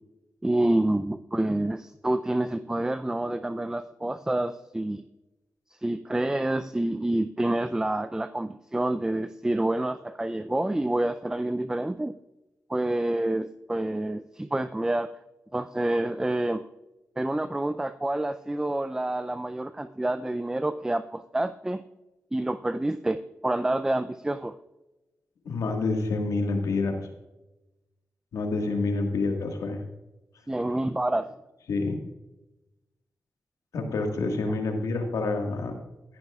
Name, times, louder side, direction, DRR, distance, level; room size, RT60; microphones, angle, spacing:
voice 1, 0.4-5.0 5.8-12.1 12.7-15.1 15.5-16.6 17.2-21.8 22.3-24.6 30.5-31.3, right 1 dB, 10° right, 11 dB, 0.4 m, -28 dB
voice 2, 25.4-27.0 28.3-29.8 31.7-32.0 33.7-35.7, left 3 dB, 85° left, 3 dB, 1.7 m, -27 dB
13.5 x 11.5 x 2.4 m, 1.0 s
cardioid pair, 50°, 6 cm